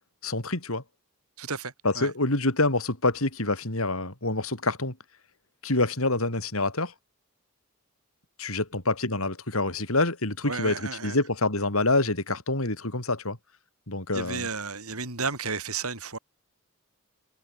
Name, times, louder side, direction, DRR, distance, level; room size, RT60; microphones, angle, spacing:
voice 1, 0.2-0.8 1.8-5.0 5.6-6.9 8.4-13.4 13.9-14.5, left 2 dB, 70° left, 5.3 m, -26 dB
voice 2, 1.4-2.1 10.5-11.2 14.1-16.2, right 4 dB, 85° right, 7.0 m, -33 dB
head